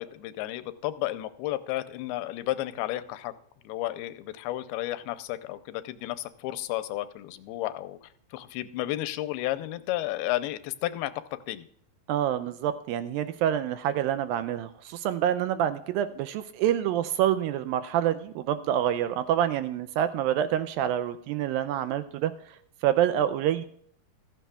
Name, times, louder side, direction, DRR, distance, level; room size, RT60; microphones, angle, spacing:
voice 1, 0.0-3.3 3.6-11.1 11.5-11.7, left 15 dB, 85° left, 12 dB, 2.6 m, -32 dB
voice 2, 12.1-22.6 22.8-23.6, right 10 dB, 80° right, 11 dB, 2.1 m, -27 dB
15.5 x 13.5 x 2.3 m, 0.63 s
omnidirectional pair, 4.4 m